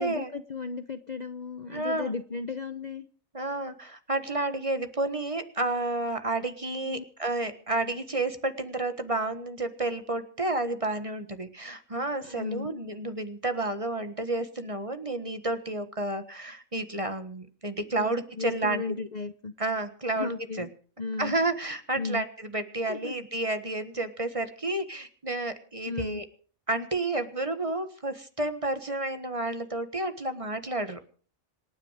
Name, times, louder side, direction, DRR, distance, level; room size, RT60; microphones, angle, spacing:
voice 1, 0.0-3.1 6.8-7.0 12.2-12.7 17.9-19.5 20.1-20.7 21.0-21.3 21.9-22.2 22.9-23.2 25.9-26.2, left 4 dB, 40° left, 10 dB, 0.8 m, -35 dB
voice 2, 1.7-2.1 3.3-18.8 19.6-20.7 21.2-26.2 26.7-31.0, right 2 dB, 25° right, 9 dB, 1.4 m, -31 dB
26.5 x 9.6 x 4.9 m, 0.42 s
omnidirectional pair, 1.4 m